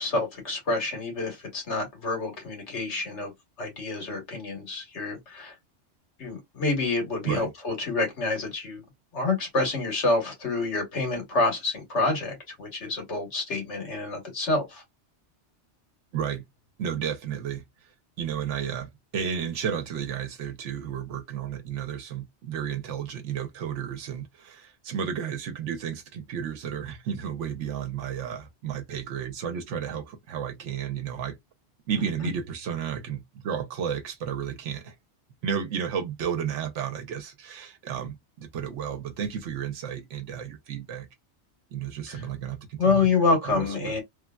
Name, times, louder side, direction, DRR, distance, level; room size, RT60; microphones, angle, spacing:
voice 1, 0.0-3.3 3.6-5.5 6.2-8.8 9.1-14.8 42.1-42.2 42.8-44.0, left 3 dB, 70° left, 1.6 m, -27 dB
voice 2, 16.1-16.4 16.8-17.6 18.2-31.4 31.9-34.9 35.4-41.1 41.7-43.1 43.4-43.9, right 8 dB, 90° right, 1.0 m, -32 dB
3.2 x 2.4 x 2.2 m
omnidirectional pair, 1.2 m